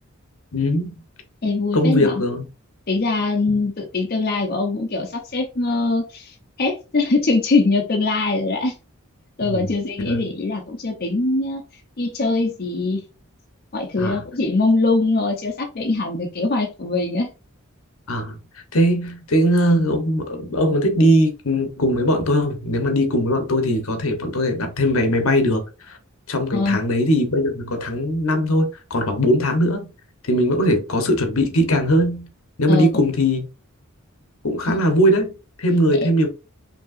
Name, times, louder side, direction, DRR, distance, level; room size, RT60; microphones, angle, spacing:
voice 1, 0.5-0.9 1.7-2.4 3.5-3.6 9.4-9.7 10.1-10.3 14.0-14.2 18.1-18.4 18.7-26.0 26.3-29.9 30.3-32.3 32.6-33.5 34.4-36.3, equal, 70° left, 1.0 m, -20 dB
voice 2, 1.4-2.2 2.9-8.7 9.4-11.6 12.0-13.0 13.7-17.3 26.5-26.8 32.7-32.9 34.7-34.8 36.0-36.1, left 3 dB, 45° left, 0.6 m, -22 dB
5.3 x 2.7 x 2.5 m
head